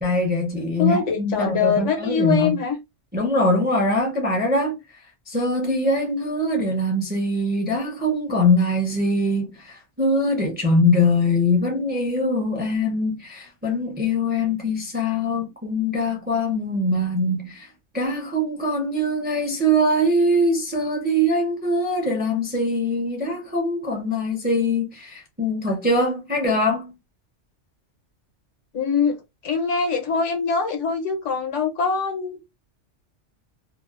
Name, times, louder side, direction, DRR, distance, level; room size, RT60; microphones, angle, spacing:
voice 1, 0.0-2.6 3.1-4.8 5.3-17.7 17.9-26.9, left 1 dB, 10° right, 0.5 m, -22 dB
voice 2, 0.8-2.8 28.7-29.2 29.4-32.4, left 5 dB, 80° left, 1.1 m, -23 dB
2.8 x 2.1 x 2.3 m
omnidirectional pair, 1.2 m